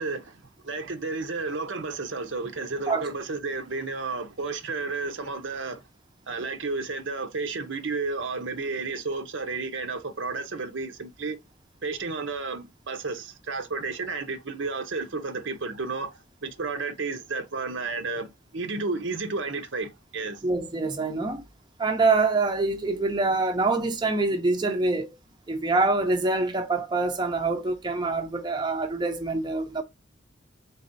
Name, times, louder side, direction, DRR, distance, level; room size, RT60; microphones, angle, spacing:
voice 1, 0.0-5.8 6.3-11.4 11.8-16.1 16.4-20.4, right 3 dB, 75° right, 0.8 m, -32 dB
voice 2, 20.4-21.4 21.8-25.1 25.5-29.8, right 3 dB, 25° right, 0.6 m, -25 dB
4.0 x 4.0 x 2.6 m
head